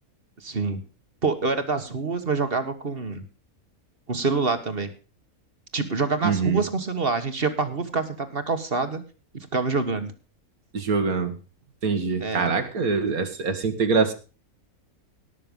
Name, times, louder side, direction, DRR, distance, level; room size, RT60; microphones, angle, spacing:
voice 1, 0.4-0.8 1.2-3.2 4.1-4.9 5.7-9.0 9.3-10.1 12.2-12.5, right 4 dB, 40° right, 9 dB, 1.6 m, -26 dB
voice 2, 6.2-6.6 10.7-11.3 11.8-14.1, right 5 dB, 75° right, 8 dB, 2.2 m, -24 dB
18.0 x 6.8 x 5.4 m, 0.35 s
omnidirectional pair, 1.6 m